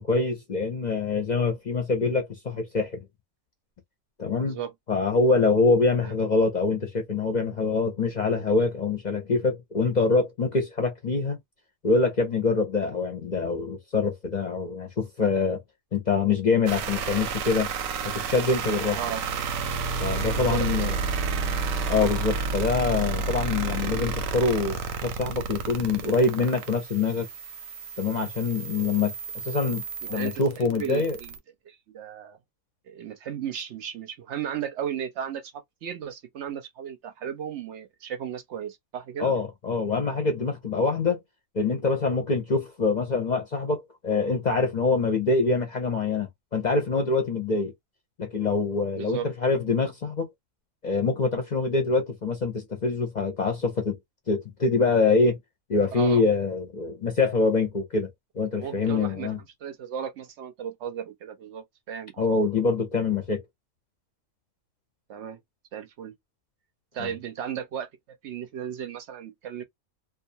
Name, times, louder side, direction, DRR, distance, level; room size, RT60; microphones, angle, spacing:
voice 1, 0.0-3.0 4.2-4.6 4.9-11.4 11.8-15.6 15.9-17.7 18.1-19.0 20.0-20.9 21.9-27.3 28.0-29.1 29.4-29.8 30.1-31.2 39.2-41.2 41.5-47.7 48.2-50.3 50.8-54.0 54.3-55.4 55.7-58.1 58.4-59.4 62.2-63.4 67.0-67.1, left 4 dB, 45° left, 0.6 m, -25 dB
voice 2, 4.4-4.7 6.0-6.1 19.0-19.2 20.3-20.9 21.3-21.5 30.0-31.3 31.6-32.4 32.9-39.3 49.0-49.3 55.9-56.2 58.6-59.3 59.6-62.3 65.1-65.4 65.7-66.2 66.9-67.9 68.2-69.6, right 9 dB, 70° right, 0.8 m, -35 dB
sound 1, 16.7-31.4, right 4 dB, 85° right, 1.0 m, -31 dB
2.4 x 2.3 x 2.6 m
omnidirectional pair, 1.4 m